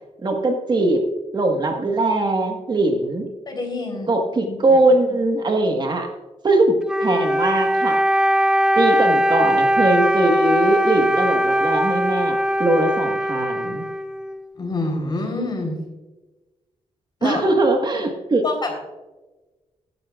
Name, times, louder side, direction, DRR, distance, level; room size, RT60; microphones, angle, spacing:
voice 1, 0.2-1.0 1.3-3.3 4.1-6.1 6.4-8.0 8.7-13.9 17.2-18.4, right 2 dB, 40° right, 3 dB, 1.5 m, -21 dB
voice 2, 3.5-4.1 4.5-4.6 14.6-15.8 17.2-17.4 18.4-18.8, left 2 dB, 40° left, 2 dB, 3.7 m, -26 dB
Wind instrument woodwind instrument, 6.9-14.4, equal, 5° right, 0.5 m, -20 dB
16.0 x 11.0 x 2.4 m, 1.1 s
wide cardioid pair, 115°, 12 cm